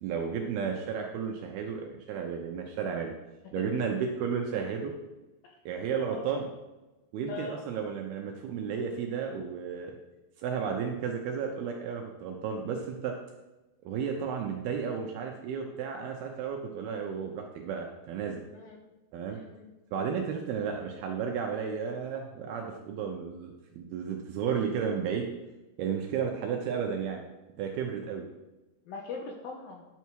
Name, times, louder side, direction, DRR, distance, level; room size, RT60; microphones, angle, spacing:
voice 1, 0.0-3.1 3.5-4.9 5.7-6.5 7.1-10.0 10.4-13.2 13.8-18.4 19.1-19.4 19.9-25.3 25.8-27.2 27.6-28.3, right 6 dB, 75° right, 2 dB, 2.4 m, -33 dB
voice 2, 6.1-6.4 7.3-7.6 18.5-18.8 19.2-19.7 20.0-20.1 28.9-29.9, left 4 dB, 70° left, 0 dB, 2.4 m, -41 dB
11.0 x 7.0 x 4.6 m, 1.1 s
omnidirectional pair, 5.2 m